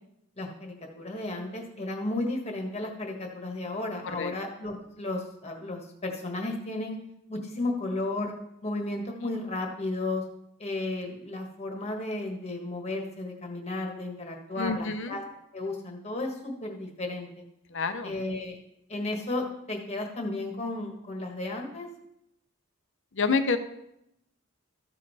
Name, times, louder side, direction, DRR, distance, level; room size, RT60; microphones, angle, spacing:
voice 1, 0.4-7.0 7.3-8.3 8.6-10.2 10.6-15.2 15.5-17.3 18.0-18.6 18.9-21.9, left 2 dB, 30° left, 1 dB, 1.4 m, -33 dB
voice 2, 14.6-15.2 17.7-18.1 23.1-23.6, left 4 dB, 55° left, 9 dB, 0.7 m, -28 dB
13.5 x 5.3 x 4.1 m, 0.80 s
head